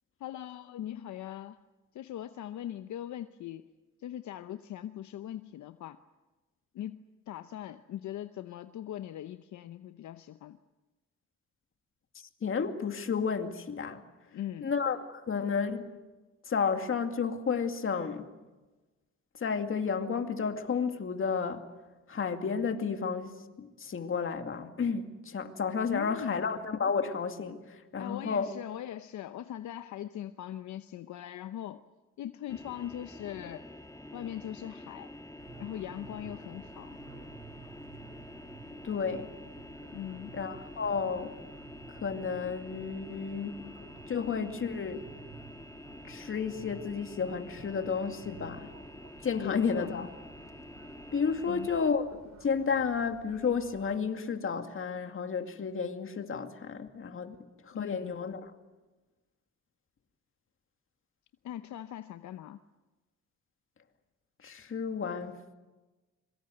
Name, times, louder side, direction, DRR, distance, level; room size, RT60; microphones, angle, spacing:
voice 1, 0.2-1.6 1.9-3.7 4.0-6.0 6.7-10.6 14.3-14.7 25.9-26.5 28.0-31.8 32.2-33.7 34.1-35.1 35.6-37.0 39.9-40.4 49.4-50.1 51.5-51.7 57.7-58.2 61.4-62.6, left 11 dB, 70° left, 0.9 m, -40 dB
voice 2, 12.4-14.0 14.6-15.9 16.5-18.3 19.4-21.7 22.1-28.5 38.8-39.3 40.3-41.4 41.9-43.7 44.1-45.0 46.0-48.7 49.2-50.1 51.1-57.4 57.6-58.5 64.4-65.5, left 5 dB, 45° left, 2.3 m, -32 dB
sound 1, 32.5-51.9, left 1 dB, 10° left, 1.6 m, -48 dB
sound 2, 35.4-54.0, right 6 dB, 60° right, 2.8 m, -54 dB
25.0 x 23.0 x 7.9 m
cardioid pair, 90°, 30 cm